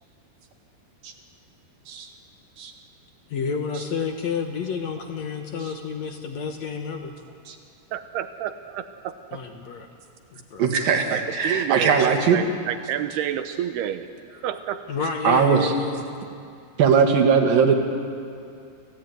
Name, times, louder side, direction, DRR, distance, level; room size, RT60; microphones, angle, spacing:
voice 1, 3.3-7.1 9.3-9.9 10.5-10.6 12.0-12.1 14.9-16.0, left 5 dB, 75° left, 4 dB, 1.6 m, -30 dB
voice 2, 7.9-9.4 11.1-14.1 14.4-14.8, right 10 dB, 80° right, 10 dB, 2.9 m, -29 dB
voice 3, 10.6-12.4 15.2-15.7 16.8-17.7, right 6 dB, 65° right, 4 dB, 3.3 m, -19 dB
27.5 x 16.0 x 9.4 m, 2.5 s
omnidirectional pair, 4.8 m